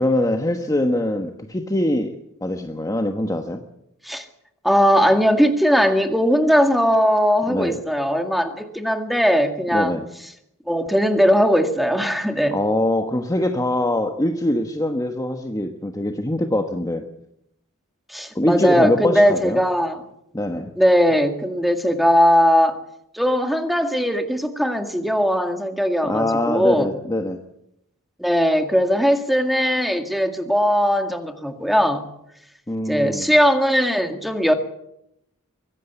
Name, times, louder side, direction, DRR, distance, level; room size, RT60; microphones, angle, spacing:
voice 1, 0.0-3.6 7.5-7.8 9.7-10.1 12.5-17.0 18.3-19.6 20.3-20.7 26.0-27.4 32.7-33.3, left 1 dB, 15° left, 5 dB, 1.2 m, -23 dB
voice 2, 4.6-9.9 10.7-12.6 18.1-20.0 20.8-22.8 23.1-26.9 28.2-32.0 32.9-34.5, equal, ahead, 6 dB, 2.0 m, -19 dB
23.5 x 16.0 x 8.1 m, 0.79 s
head